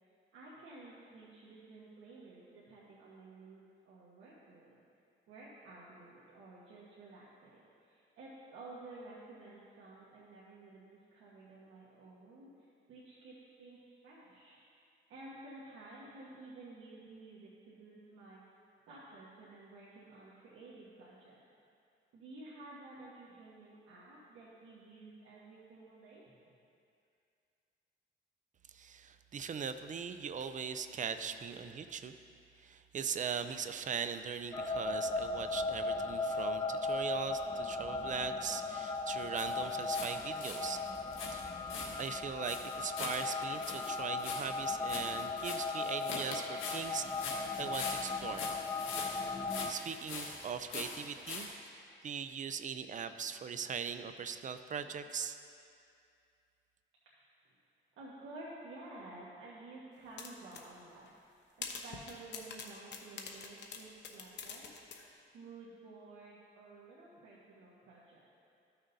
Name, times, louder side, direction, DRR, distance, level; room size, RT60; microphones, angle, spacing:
voice 1, 0.3-4.8 5.3-14.8 15.1-18.6 18.9-21.4 22.1-26.3 57.4-57.5 58.0-64.7 65.3-68.3, right 2 dB, 80° right, -7 dB, 1.3 m, -53 dB
voice 2, 28.7-32.2 32.6-40.8 41.3-41.4 42.0-48.5 49.7-51.5 52.0-55.4, right 7 dB, 40° right, 10 dB, 0.5 m, -40 dB
sound 1, 34.5-49.7, left 3 dB, 20° left, 0.4 m, -37 dB
sound 2, 39.3-40.1 40.4-51.5, left 4 dB, 80° left, 1.4 m, -43 dB
sound 3, 60.2-60.7 61.1-61.2 61.6-65.0, left 6 dB, 60° left, 0.9 m, -44 dB
14.0 x 6.3 x 2.7 m, 2.4 s
cardioid pair, 90°, 20 cm